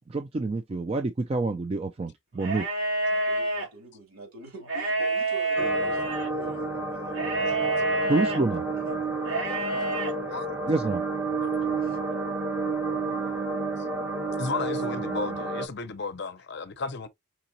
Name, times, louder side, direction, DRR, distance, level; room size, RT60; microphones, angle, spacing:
voice 1, 0.1-2.7 8.1-8.6 10.7-11.0, right 3 dB, 25° right, 0.3 m, -27 dB
sound 1, 2.4-3.7 4.6-6.3 7.1-8.4 9.2-10.1, right 2 dB, 55° right, 3.0 m, -27 dB
voice 2, 3.1-7.7 8.7-9.0 9.4-10.0 11.8-12.1 13.1-13.6, right 2 dB, 75° right, 2.8 m, -46 dB
sound 2, 5.6-15.7, right 3 dB, 10° right, 1.1 m, -30 dB
voice 3, 14.4-17.1, left 4 dB, 50° left, 0.6 m, -34 dB
4.9 x 3.8 x 2.7 m
head